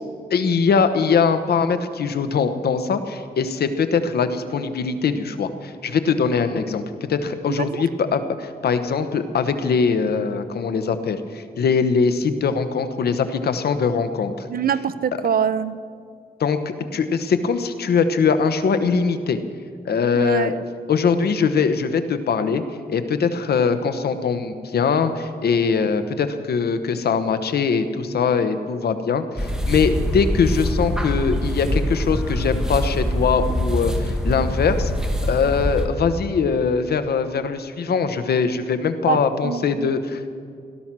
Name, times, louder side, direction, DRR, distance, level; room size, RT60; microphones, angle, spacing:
voice 1, 0.3-14.5 16.4-19.4 19.8-20.6 20.9-22.6 22.9-34.9 35.3-40.3, left 5 dB, 80° left, 9 dB, 1.1 m, -22 dB
voice 2, 14.5-15.8 20.1-20.6 39.1-39.9, right 7 dB, 65° right, 14 dB, 0.7 m, -24 dB
sound 1, 29.4-35.9, left 1 dB, 5° right, 1.6 m, -24 dB
17.5 x 12.5 x 6.1 m, 2.2 s
wide cardioid pair, 110°, 16 cm